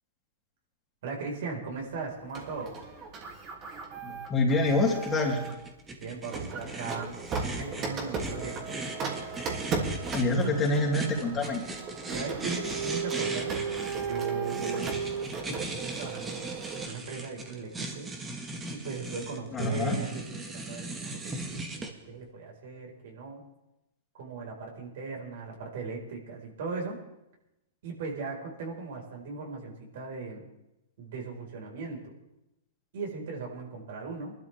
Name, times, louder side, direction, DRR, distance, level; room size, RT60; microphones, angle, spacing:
voice 1, 1.0-2.7 6.0-7.2 7.6-8.8 12.1-13.6 14.0-14.9 15.4-16.4 16.8-18.1 18.7-23.4 24.1-27.0 27.8-30.5 31.0-32.1 32.9-34.3, right 4 dB, 65° right, 0 dB, 5.2 m, -38 dB
Printer, 2.3-5.6 6.3-16.9, right 5 dB, 30° right, 2.8 m, -35 dB
voice 2, 4.0-5.4 10.1-11.6 19.5-20.0, left 2 dB, 20° left, -1 dB, 3.3 m, -26 dB
sound 1, 4.7-21.9, right 2 dB, 15° right, 1.9 m, -39 dB
22.5 x 12.5 x 3.6 m, 0.92 s
hypercardioid pair, 125°, 0 cm